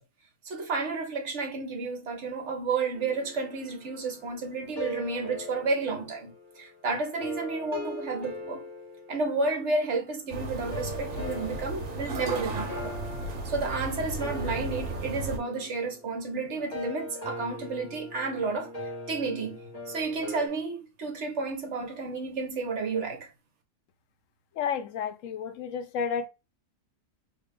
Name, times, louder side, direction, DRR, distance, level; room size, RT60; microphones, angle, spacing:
voice 1, 0.4-8.7 9.1-13.0 13.4-18.7 19.1-19.6 19.9-23.3, right 3 dB, 65° right, 1.2 m, -31 dB
sound 1, 2.9-10.1 10.7-20.5, left 1 dB, 35° left, 1.1 m, -41 dB
sound 2, 10.3-15.4, right 2 dB, 85° right, 1.2 m, -34 dB
voice 2, 24.6-26.3, left 7 dB, 75° left, 1.0 m, -31 dB
3.3 x 2.3 x 3.5 m
omnidirectional pair, 1.4 m